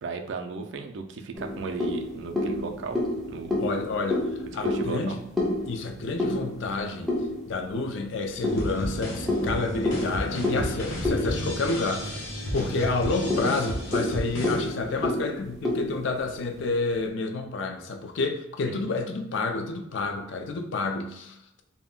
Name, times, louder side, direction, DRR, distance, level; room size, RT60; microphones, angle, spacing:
voice 1, 0.0-3.0 3.3-3.5 4.5-5.2 18.6-18.8, right 4 dB, 65° right, 5 dB, 0.3 m, -35 dB
sound 1, 1.3-7.8 8.4-12.3 12.6-12.7 13.1-16.7, left 1 dB, ahead, 0.4 m, -30 dB
voice 2, 3.6-4.3 4.5-5.2 5.7-7.1 7.5-12.2 12.5-21.6, left 3 dB, 70° left, 5 dB, 0.4 m, -29 dB
sound 2, 8.3-14.7, equal, 85° left, 0.8 m, -34 dB
sound 3, 8.4-15.1, equal, 55° left, 0.8 m, -38 dB
2.2 x 2.1 x 3.7 m, 0.80 s
head